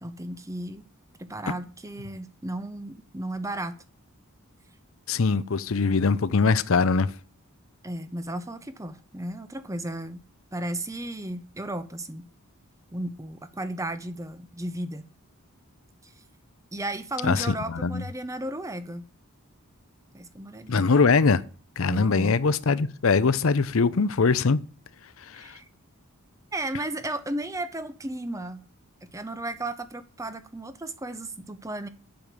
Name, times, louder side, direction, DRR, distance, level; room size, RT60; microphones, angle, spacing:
voice 1, 0.0-0.8 1.2-3.8 7.8-10.2 10.5-12.3 12.9-15.1 16.0-16.1 16.7-19.1 20.1-20.9 21.9-22.4 25.3-25.6 26.5-28.6 29.1-31.9, right 1 dB, 15° right, 0.8 m, -34 dB
voice 2, 5.1-7.1 17.2-18.0 20.7-21.4 21.8-24.6 25.3-25.5, left 4 dB, 65° left, 0.6 m, -22 dB
8.9 x 7.8 x 6.7 m
head